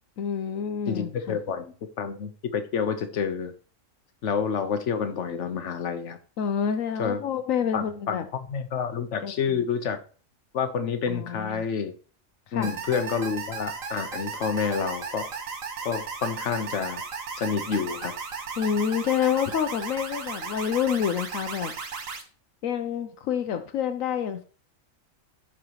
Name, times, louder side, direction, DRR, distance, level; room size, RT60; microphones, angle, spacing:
voice 1, 0.2-1.4 6.4-8.2 9.2-9.6 11.1-11.6 12.5-12.7 18.6-21.7 22.6-24.4, left 8 dB, 80° left, 1.1 m, -28 dB
voice 2, 0.9-3.5 4.2-6.2 7.0-7.2 7.7-10.0 10.5-11.9 12.5-15.3 15.8-17.0 17.4-18.1, left 6 dB, 65° left, 1.3 m, -29 dB
sound 1, 12.6-22.2, right 5 dB, 80° right, 1.7 m, -35 dB
14.5 x 4.9 x 3.0 m
omnidirectional pair, 1.4 m